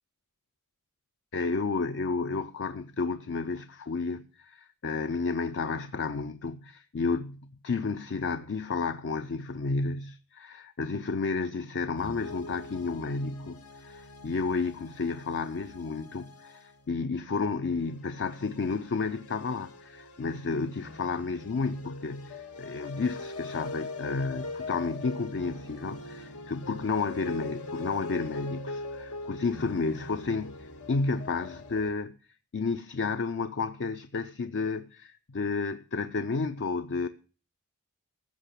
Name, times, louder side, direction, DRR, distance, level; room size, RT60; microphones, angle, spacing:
voice 1, 1.3-32.2 32.5-37.1, left 4 dB, 55° left, 0.6 m, -31 dB
sound 1, 12.0-31.9, left 3 dB, 85° left, 1.8 m, -42 dB
14.5 x 5.8 x 8.4 m
head